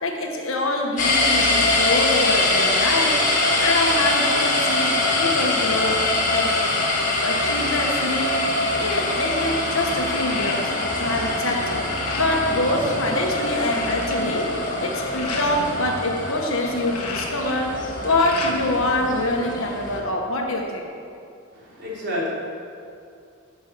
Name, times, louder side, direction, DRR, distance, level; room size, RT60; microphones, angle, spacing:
voice 1, 0.0-3.2 3.6-6.0 6.3-6.5 7.2-8.5 8.8-11.8 12.2-17.7 18.0-20.8, left 1 dB, 60° left, 1 dB, 1.5 m, -25 dB
sound 1, 1.0-20.0, left 2 dB, 35° left, 1.6 m, -23 dB
sound 2, 10.0-11.1 11.4-12.5 13.0-13.1 13.3-15.6 16.6-18.8 19.2-20.1, left 3 dB, 85° left, 1.5 m, -34 dB
voice 2, 21.5-22.3, left 1 dB, 50° right, -6 dB, 3.4 m, -29 dB
15.5 x 5.8 x 6.9 m, 2.4 s
head